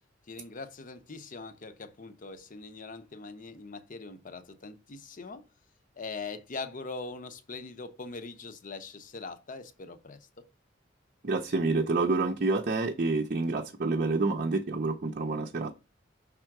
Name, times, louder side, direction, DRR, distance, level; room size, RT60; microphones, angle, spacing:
voice 1, 0.3-5.4 6.0-10.4, left 4 dB, 45° left, 0.7 m, -42 dB
voice 2, 11.2-15.7, right 3 dB, 50° right, 0.6 m, -28 dB
5.5 x 3.6 x 5.8 m
head